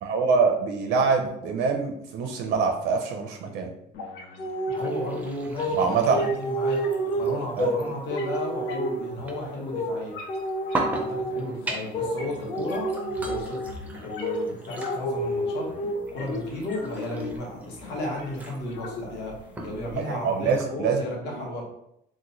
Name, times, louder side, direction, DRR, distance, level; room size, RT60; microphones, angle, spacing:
voice 1, 0.0-3.7 5.7-6.2 7.6-7.7 20.1-21.0, right 5 dB, 65° right, 4 dB, 0.5 m, -24 dB
sound 1, 3.9-19.9, left 3 dB, 85° left, 0.6 m, -43 dB
sound 2, 4.4-5.2 5.6-5.8 6.1-7.8 8.1-9.2 9.7-9.9 10.3-11.5 11.9-12.1 12.5-13.8 14.2-14.4 14.8-16.0 16.3-16.5 16.8-17.4, right 1 dB, 40° left, 0.6 m, -29 dB
voice 2, 4.7-6.8 7.1-10.2 10.9-12.9 13.2-15.7 16.1-19.4 19.6-21.6, left 1 dB, 70° left, -2 dB, 1.1 m, -34 dB
sound 3, 4.7-20.7, right 2 dB, 10° right, 0.4 m, -40 dB
3.0 x 2.1 x 3.8 m, 0.77 s
cardioid pair, 170°, 18 cm